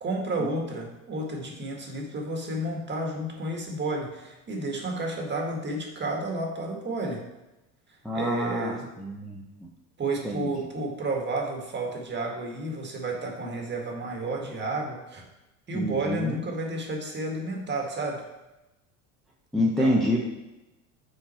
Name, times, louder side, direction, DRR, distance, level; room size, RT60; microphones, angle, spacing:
voice 1, 0.0-7.2 8.1-8.9 10.0-15.2 15.7-18.2 19.6-20.0, right 2 dB, 25° right, 0 dB, 1.8 m, -31 dB
voice 2, 8.0-9.4 10.2-10.5 15.7-16.4 19.5-20.3, equal, ahead, -4 dB, 0.9 m, -27 dB
7.3 x 4.5 x 4.4 m, 0.99 s
supercardioid pair, 105°, 40 cm